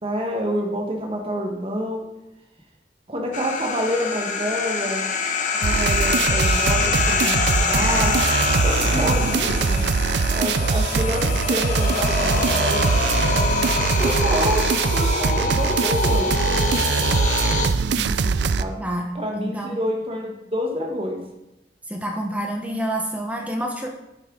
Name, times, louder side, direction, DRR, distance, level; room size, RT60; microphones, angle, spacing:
voice 1, 0.0-2.1 3.1-5.0 5.5-8.2 8.6-9.8 10.3-13.1 14.0-16.3 18.6-18.8 19.1-21.2, equal, 30° right, 1 dB, 1.3 m, -27 dB
sound 1, 3.3-17.7, left 4 dB, 45° left, 1.0 m, -25 dB
sound 2, 5.6-18.6, right 5 dB, 70° right, 0.4 m, -22 dB
voice 2, 8.9-9.4 17.9-18.4 18.8-19.1 19.3-19.8 21.9-23.9, right 1 dB, 10° right, 1 dB, 0.9 m, -28 dB
9.4 x 7.7 x 3.8 m, 0.92 s
head